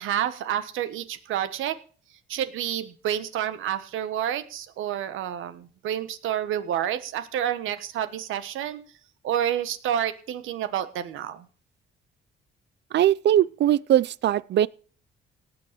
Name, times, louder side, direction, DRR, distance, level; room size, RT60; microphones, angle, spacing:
voice 1, 0.0-1.8 2.3-8.9 9.2-11.4, right 10 dB, 85° right, 1.3 m, -29 dB
voice 2, 12.9-14.7, right 11 dB, 60° right, 0.5 m, -20 dB
18.0 x 6.2 x 6.8 m
cardioid pair, 90°, 20 cm